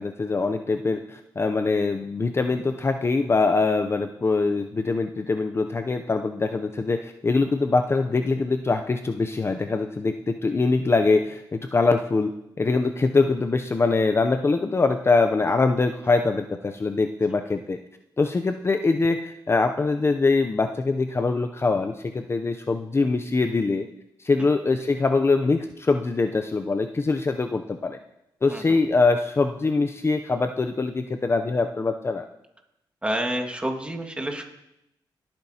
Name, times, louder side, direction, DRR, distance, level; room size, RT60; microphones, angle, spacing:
voice 1, 0.0-12.3 12.6-17.8 18.2-23.9 24.2-28.0 28.4-32.2, left 3 dB, 30° left, 6 dB, 0.5 m, -23 dB
voice 2, 33.0-34.4, right 1 dB, 15° right, 2 dB, 1.8 m, -29 dB
18.5 x 8.8 x 2.8 m, 0.84 s
cardioid pair, 80°, 9 cm